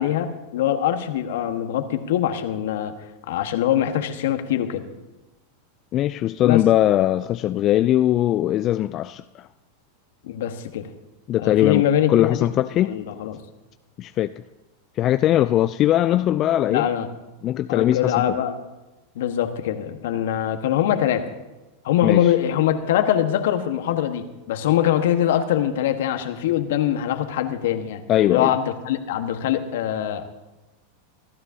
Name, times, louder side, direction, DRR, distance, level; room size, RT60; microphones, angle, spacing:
voice 1, 0.0-2.9 3.3-4.9 6.4-6.6 10.2-10.9 11.4-12.5 12.9-13.4 16.7-17.1 17.7-18.6 19.1-21.3 21.8-28.0 28.3-30.4, left 11 dB, 70° left, 1.3 m, -23 dB
voice 2, 5.9-9.5 11.3-11.8 12.1-12.9 14.0-14.3 15.0-16.9 17.4-18.2 22.0-22.3 28.1-28.6, left 13 dB, 40° left, 0.4 m, -20 dB
26.0 x 12.5 x 2.8 m
hypercardioid pair, 100°, 0 cm